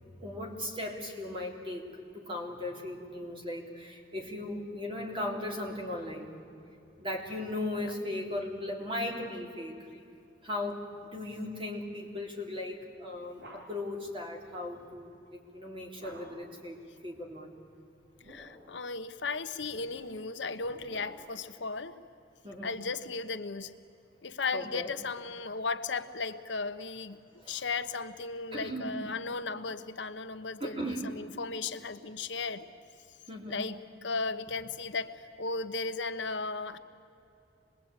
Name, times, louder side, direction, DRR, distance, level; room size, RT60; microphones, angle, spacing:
voice 1, 0.2-1.9 2.1-6.3 7.0-9.9 10.4-16.8 17.0-17.5 22.4-22.7 24.5-24.9 27.4-27.6 28.5-29.0 30.6-31.1 33.3-33.6, left 1 dB, 30° right, 1 dB, 3.2 m, -37 dB
voice 2, 7.8-8.1 18.3-22.0 22.6-23.7 24.2-27.2 27.5-32.7 33.5-33.8 34.0-36.8, left 4 dB, 80° left, 10 dB, 1.0 m, -36 dB
sound 1, 12.8-14.0 16.0-16.6 18.0-18.8 19.6-21.5, right 1 dB, 70° right, 5.6 m, -53 dB
26.5 x 20.5 x 8.9 m, 2.7 s
head